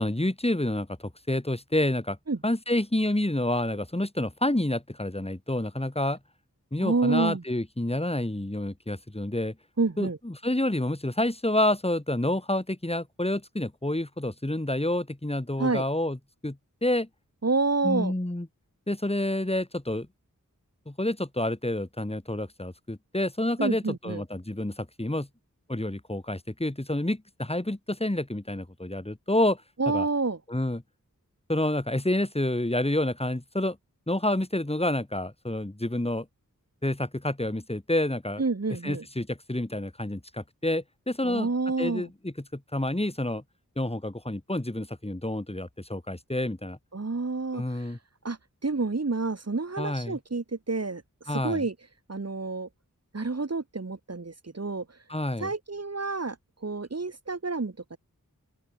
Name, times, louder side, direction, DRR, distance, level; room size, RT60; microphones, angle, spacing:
voice 1, 0.0-2.2 2.4-6.2 6.7-9.5 10.0-16.2 16.4-17.1 17.8-18.5 18.9-20.1 20.8-25.3 25.7-29.6 29.9-30.0 30.5-30.8 31.5-33.8 34.1-36.3 36.8-38.4 38.8-41.5 41.8-43.4 43.8-46.8 47.5-48.0 49.8-50.2 51.3-51.6 55.1-55.5, left 1 dB, 20° left, 5.2 m, -28 dB
voice 2, 6.8-7.4 9.8-10.2 15.6-15.8 17.4-18.1 23.6-24.2 29.8-30.4 38.4-39.0 41.2-42.1 46.9-47.6 48.2-51.0 51.3-51.7 52.1-52.7 53.1-54.9 55.4-56.4 56.6-58.0, right 3 dB, 50° right, 2.3 m, -28 dB
open air
wide cardioid pair, 55°, 32 cm